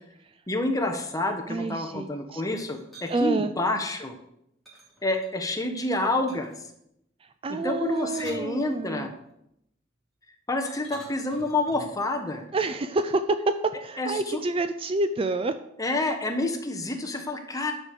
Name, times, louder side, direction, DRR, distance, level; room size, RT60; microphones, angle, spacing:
voice 1, 0.5-4.1 5.0-6.5 7.5-9.1 10.5-12.5 14.0-14.4 15.8-17.7, left 2 dB, 20° left, 4 dB, 1.2 m, -28 dB
voice 2, 1.5-2.4 3.1-3.5 7.4-9.1 12.5-13.6 13.8-15.6, right 2 dB, 30° right, 10 dB, 0.4 m, -28 dB
sound 1, 2.5-3.2 4.6-5.6 6.3-6.7 7.8-9.1 10.7-12.0, equal, ahead, 3.0 m, -49 dB
10.5 x 5.3 x 6.6 m, 0.79 s
head